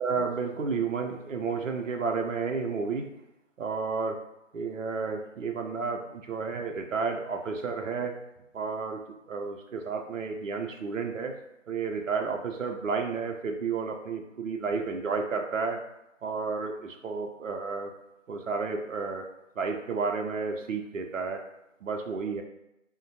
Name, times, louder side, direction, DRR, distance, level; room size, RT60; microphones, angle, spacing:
voice 1, 0.0-3.1 3.6-4.2 4.5-8.2 8.5-9.0 9.3-11.3 11.7-15.8 16.2-17.9 18.3-19.3 19.6-21.4 21.8-22.4, right 5 dB, 75° right, 3 dB, 0.6 m, -31 dB
4.9 x 2.1 x 2.7 m, 0.89 s
figure-of-eight pair, 155°, 38 cm